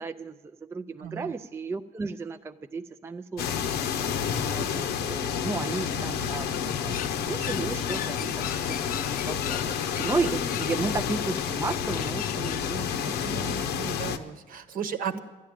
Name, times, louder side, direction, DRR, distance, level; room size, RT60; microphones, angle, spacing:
voice 1, 0.0-8.6 9.0-13.7 15.1-15.2, right 4 dB, 15° right, 8 dB, 0.3 m, -34 dB
voice 2, 1.0-1.3 7.8-7.9 13.0-15.2, right 8 dB, 55° right, 8 dB, 1.0 m, -36 dB
sound 1, 3.4-14.2, left 8 dB, 80° left, 0.8 m, -29 dB
sound 2, 6.2-12.7, left 11 dB, 55° left, 0.4 m, -40 dB
12.5 x 10.0 x 8.8 m, 1.2 s
cardioid pair, 110°, 17 cm